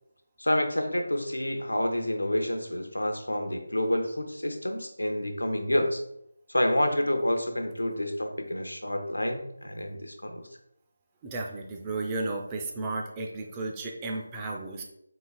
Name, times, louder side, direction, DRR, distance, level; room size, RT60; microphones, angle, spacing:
voice 1, 0.4-6.0 6.5-10.5, left 1 dB, 75° left, 5 dB, 0.5 m, -28 dB
voice 2, 11.2-14.8, right 2 dB, 15° right, 0 dB, 0.3 m, -33 dB
4.0 x 2.8 x 2.3 m, 0.78 s
figure-of-eight pair, 160°, 0 cm